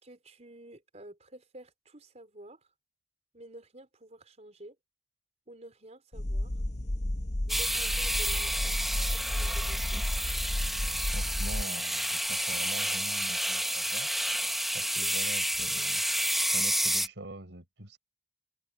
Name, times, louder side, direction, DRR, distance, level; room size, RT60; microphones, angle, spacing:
voice 1, 0.0-2.7 3.3-4.8 5.5-6.5 7.5-8.8 9.1-10.1 14.8-15.1, right 1 dB, 40° right, 4.4 m, -50 dB
sound 1, 6.1-11.6, left 1 dB, 40° left, 1.0 m, -32 dB
sound 2, 7.5-17.1, equal, ahead, 1.2 m, -30 dB
voice 2, 11.1-14.1 14.7-16.0 16.5-18.0, right 1 dB, 75° right, 4.4 m, -44 dB
open air
head